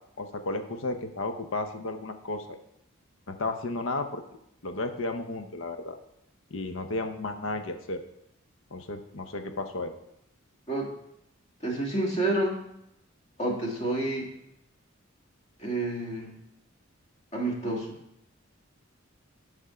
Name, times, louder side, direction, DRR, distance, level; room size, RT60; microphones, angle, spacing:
voice 1, 0.2-2.6 3.3-4.2 4.6-6.0 6.5-8.0 8.7-9.9, left 2 dB, 65° left, 7 dB, 0.8 m, -33 dB
voice 2, 11.6-12.5 13.4-14.3 15.6-16.3 17.3-18.0, right 2 dB, 30° left, -1 dB, 1.7 m, -29 dB
10.0 x 3.6 x 5.6 m, 0.80 s
head